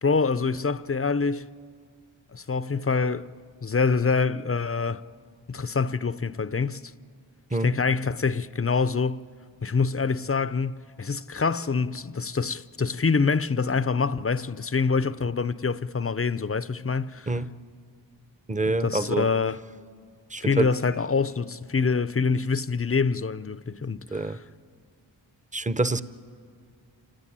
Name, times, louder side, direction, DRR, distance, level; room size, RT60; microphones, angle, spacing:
voice 1, 0.0-1.5 2.3-3.3 3.6-5.0 5.5-6.8 7.6-9.3 9.6-17.4 18.7-19.6 20.4-24.4, left 4 dB, 30° left, 0.5 m, -26 dB
voice 2, 18.5-19.3 20.3-20.7 24.1-24.4 25.5-26.0, right 2 dB, 15° right, 0.7 m, -26 dB
28.0 x 16.5 x 10.0 m
wide cardioid pair, 50°, 46 cm